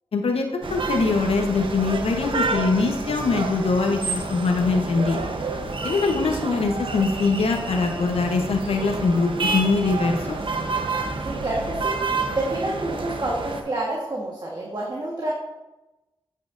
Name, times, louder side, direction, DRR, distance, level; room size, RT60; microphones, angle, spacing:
voice 1, 0.1-5.3 5.8-10.4, left 4 dB, 75° left, 3 dB, 0.9 m, -23 dB
sound 1, 0.6-13.6, right 3 dB, 60° right, 0.9 m, -29 dB
voice 2, 11.2-11.9 12.3-15.3, right 2 dB, 45° right, -3 dB, 1.4 m, -28 dB
8.3 x 5.5 x 2.6 m, 1.0 s
cardioid pair, 45°, 10 cm